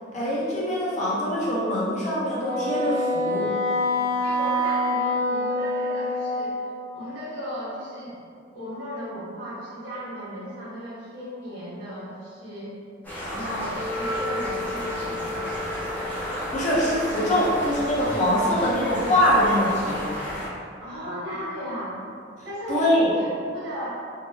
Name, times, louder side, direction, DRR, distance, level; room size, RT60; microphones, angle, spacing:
voice 1, 0.1-3.5 16.5-20.1 22.7-23.1, left 1 dB, 40° left, -7 dB, 0.7 m, -23 dB
Wind instrument woodwind instrument, 2.4-6.9, left 1 dB, 60° left, 1.0 m, -25 dB
voice 2, 4.2-6.6 6.9-8.2 8.5-12.7 13.2-15.5 20.8-22.0 22.4-23.9, equal, 90° right, -9 dB, 1.3 m, -35 dB
sound 1, 13.0-20.5, equal, 10° left, 0.8 m, -33 dB
Wind instrument woodwind instrument 2, 13.7-18.8, left 2 dB, 30° right, 0.8 m, -35 dB
3.6 x 2.1 x 2.7 m, 2.3 s
head